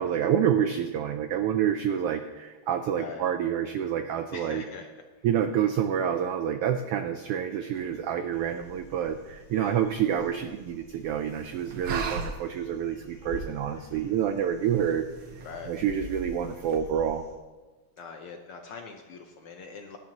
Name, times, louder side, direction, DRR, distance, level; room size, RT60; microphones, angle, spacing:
voice 1, 0.0-4.6 5.2-15.1 15.7-17.2, right 9 dB, 85° right, 7 dB, 1.3 m, -28 dB
voice 2, 2.9-3.3 4.3-5.3 9.5-9.8 15.4-15.7 18.0-20.0, left 5 dB, 70° left, 3 dB, 1.4 m, -42 dB
sound 1, 7.7-16.8, right 4 dB, 60° right, 1.3 m, -42 dB
sound 2, 8.3-17.3, left 1 dB, 30° left, 3.4 m, -48 dB
19.0 x 10.5 x 2.9 m, 1.3 s
omnidirectional pair, 3.3 m